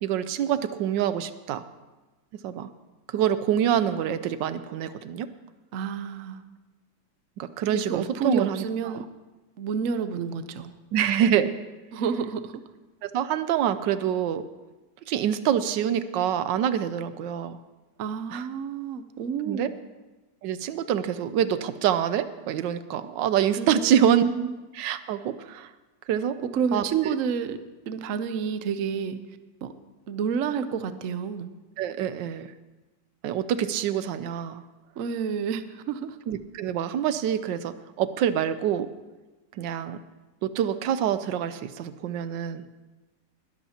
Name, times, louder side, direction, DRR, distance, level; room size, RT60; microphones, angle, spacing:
voice 1, 0.0-1.7 2.4-2.7 3.1-5.3 7.4-9.0 10.9-11.5 13.0-14.5 15.1-17.6 18.3-18.5 19.5-19.7 20.4-24.2 24.7-25.7 26.1-26.4 26.7-27.1 31.8-32.5 33.2-34.6 36.3-38.9 39.6-40.0 40.4-42.6, right 9 dB, 80° right, 12 dB, 1.3 m, -26 dB
voice 2, 5.7-6.4 7.7-9.0 9.6-10.7 11.9-12.6 18.0-19.7 23.6-24.6 26.4-27.6 27.9-29.2 29.6-29.7 30.1-31.5 35.0-36.2, right 6 dB, 60° right, 11 dB, 0.9 m, -29 dB
21.0 x 13.0 x 2.9 m, 1.1 s
omnidirectional pair, 2.0 m